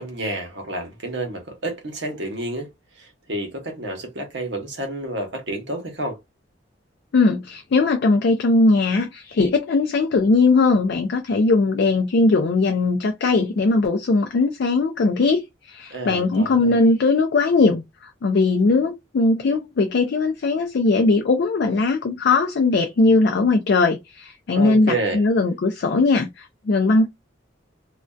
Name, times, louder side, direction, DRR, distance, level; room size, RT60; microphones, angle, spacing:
voice 1, 0.0-2.7 3.0-6.2 15.9-16.8 24.6-25.2, right 1 dB, 65° right, 0.8 m, -29 dB
voice 2, 7.1-17.8 18.2-27.1, left 3 dB, 60° left, 0.4 m, -19 dB
2.5 x 2.2 x 2.2 m
head